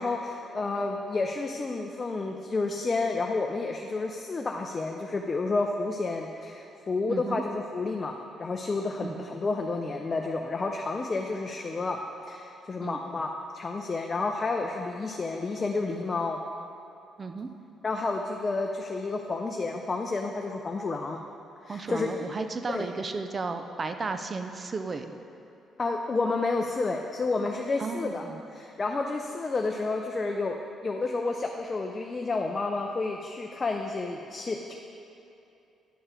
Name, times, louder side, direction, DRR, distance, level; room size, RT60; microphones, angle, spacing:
voice 1, 0.0-12.0 12.3-16.4 17.8-21.2 21.6-22.1 22.7-22.9 25.8-28.3 28.5-30.6 30.8-34.7, left 3 dB, 35° left, 2 dB, 0.5 m, -30 dB
voice 2, 7.1-7.4 9.0-9.3 12.8-13.0 17.2-17.5 21.7-25.1 27.8-28.4, right 4 dB, 35° right, 7 dB, 0.5 m, -34 dB
10.0 x 4.6 x 5.0 m, 2.7 s
cardioid pair, 90°, 0 cm